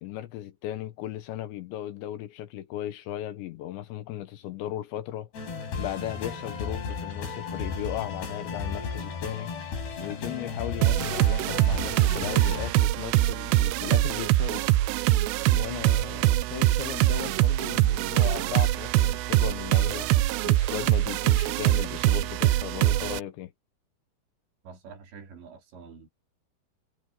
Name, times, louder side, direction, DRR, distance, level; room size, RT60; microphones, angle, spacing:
voice 1, 0.0-5.3 5.8-9.5 10.0-14.7 15.5-20.1 20.4-23.5, left 12 dB, 75° left, 3.2 m, -36 dB
sound 1, 5.3-12.7, left 5 dB, 55° left, 7.3 m, -34 dB
sound 2, 10.8-23.2, right 16 dB, 80° right, 2.5 m, -23 dB
voice 2, 24.6-26.1, right 5 dB, 65° right, 5.6 m, -46 dB
omnidirectional pair, 5.6 m